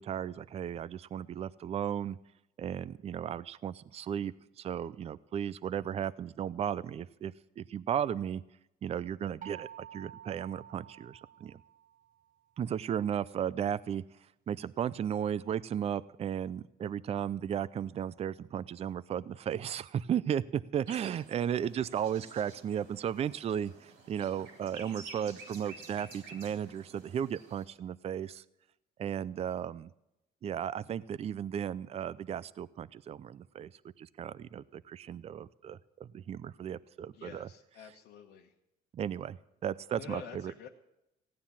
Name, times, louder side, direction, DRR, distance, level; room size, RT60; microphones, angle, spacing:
voice 1, 0.0-2.2 2.6-8.4 8.8-11.6 12.6-14.0 14.5-28.4 29.0-29.9 30.4-33.7 34.0-37.5 38.9-40.5, right 9 dB, 40° right, 18 dB, 0.5 m, -35 dB
sound 1, 9.4-12.2, right 10 dB, 55° right, 1.0 m, -50 dB
sound 2, 20.9-27.6, right 3 dB, 85° right, 3.9 m, -51 dB
voice 2, 37.1-38.5 39.9-40.7, left 8 dB, 85° left, -1 dB, 1.3 m, -48 dB
16.0 x 9.6 x 7.3 m, 0.87 s
cardioid pair, 110°, 17 cm